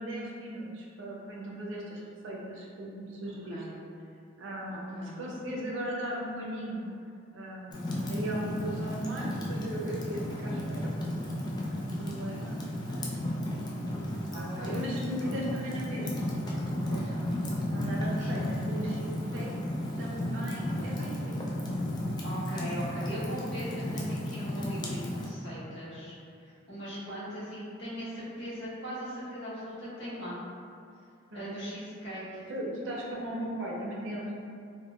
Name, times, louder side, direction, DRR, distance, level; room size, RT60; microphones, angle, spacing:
voice 1, 0.0-3.6 4.4-6.9 7.3-13.5 14.3-17.4 17.7-19.5 20.0-21.9 31.3-31.7 32.5-34.3, right 1 dB, 70° right, -3 dB, 0.6 m, -38 dB
Fire, 7.7-25.3, left 1 dB, 20° left, 0.3 m, -34 dB
voice 2, 14.3-14.8 18.2-18.3 22.2-30.3 31.3-32.5, equal, 60° left, -10 dB, 1.2 m, -40 dB
3.6 x 2.2 x 2.4 m, 2.4 s
head